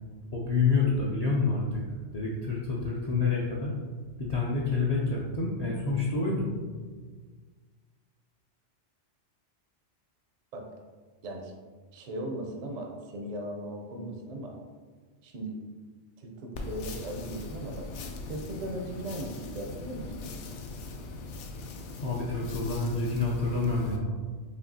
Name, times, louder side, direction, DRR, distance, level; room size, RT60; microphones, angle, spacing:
voice 1, 0.3-1.8 2.1-3.7 4.2-6.5 22.0-24.2, left 4 dB, 50° left, -5 dB, 0.5 m, -28 dB
voice 2, 11.9-14.5 15.2-15.5 16.2-17.9 18.3-20.4, right 1 dB, 50° right, 2 dB, 0.5 m, -38 dB
sound 1, 16.5-24.0, left 3 dB, 80° left, 0.9 m, -40 dB
5.2 x 2.7 x 2.7 m, 1.5 s
omnidirectional pair, 1.2 m